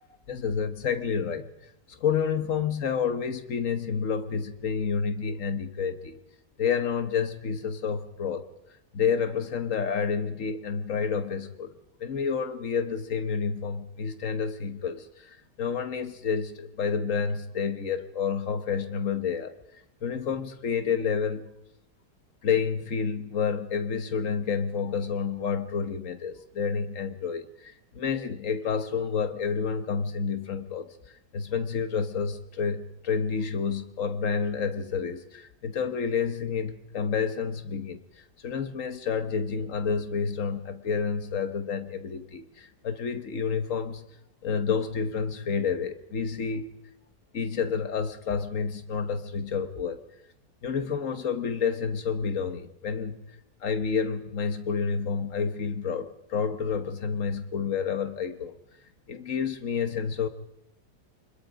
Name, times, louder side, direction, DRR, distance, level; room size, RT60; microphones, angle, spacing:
voice 1, 0.3-6.2 6.6-8.5 8.9-11.7 12.0-19.5 20.0-21.5 22.4-30.9 31.3-44.1 44.4-46.8 47.3-50.0 50.6-53.2 53.6-58.5 59.1-60.3, left 6 dB, 55° left, 1.6 m, -29 dB
24.0 x 21.5 x 5.1 m
omnidirectional pair, 1.8 m